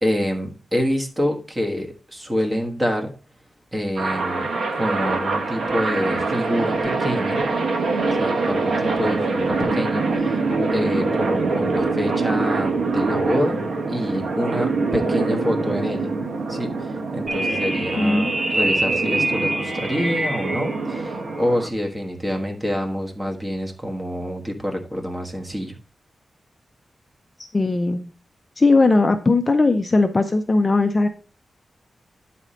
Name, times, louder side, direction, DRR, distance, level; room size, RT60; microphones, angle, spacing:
voice 1, 0.0-3.1 3.7-4.5 4.7-7.5 8.2-10.4 10.7-13.6 13.9-16.1 16.5-25.8, equal, 15° right, 2 dB, 1.4 m, -26 dB
sound 1, 4.0-21.7, right 3 dB, 90° right, 1.3 m, -24 dB
long scream on telephone, 17.3-20.8, right 1 dB, 55° right, 2.6 m, -25 dB
voice 2, 18.0-18.3 27.5-28.1 28.6-31.1, left 3 dB, 25° left, 7 dB, 0.5 m, -18 dB
9.6 x 4.2 x 5.0 m, 0.37 s
wide cardioid pair, 160°, 0 cm